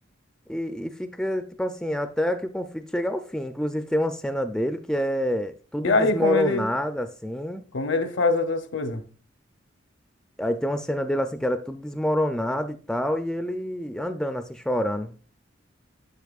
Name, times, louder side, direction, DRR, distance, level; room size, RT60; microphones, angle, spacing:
voice 1, 0.5-7.6 10.4-15.1, equal, 5° left, 0.3 m, -27 dB
voice 2, 5.8-6.6 7.7-9.0, left 3 dB, 70° left, 0.8 m, -23 dB
8.1 x 6.6 x 2.4 m
head